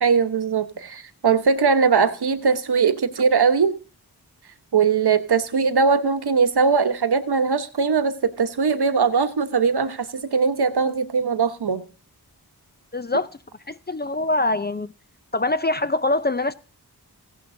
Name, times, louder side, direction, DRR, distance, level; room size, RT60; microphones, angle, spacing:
voice 1, 0.0-3.7 4.7-11.8, right 5 dB, 70° right, 1.0 m, -20 dB
voice 2, 12.9-13.3 13.7-14.9 15.3-16.5, left 2 dB, 25° left, 0.5 m, -23 dB
16.0 x 10.5 x 2.7 m
wide cardioid pair, 75°, 40 cm